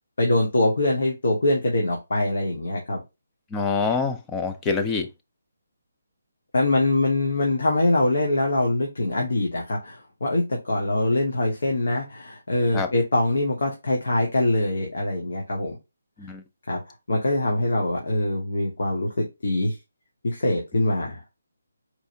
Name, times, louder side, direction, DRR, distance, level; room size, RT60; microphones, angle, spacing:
voice 1, 0.2-3.0 6.5-15.8 16.7-16.8 17.1-19.7 20.2-21.2, left 2 dB, 70° left, 1.4 m, -23 dB
voice 2, 3.5-5.1 12.7-12.9 16.2-16.4, left 4 dB, 10° left, 0.4 m, -26 dB
4.5 x 3.2 x 2.6 m
hypercardioid pair, 165°, 0 cm